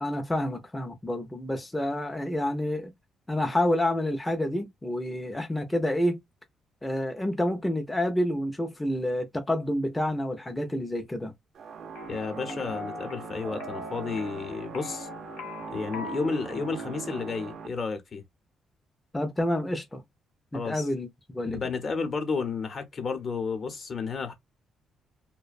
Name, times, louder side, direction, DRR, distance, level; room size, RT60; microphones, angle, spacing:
voice 1, 0.0-2.9 3.3-6.2 6.8-11.3 19.1-20.0 20.5-21.6, left 1 dB, 10° left, 0.5 m, -28 dB
sound 1, 11.6-17.7, right 5 dB, 60° right, 0.5 m, -40 dB
sound 2, 11.9-17.5, left 5 dB, 90° left, 0.7 m, -43 dB
voice 2, 12.1-15.1 15.7-18.2 20.5-20.9 21.5-24.3, left 4 dB, 45° left, 0.8 m, -32 dB
2.5 x 2.1 x 2.4 m
cardioid pair, 90°, 0 cm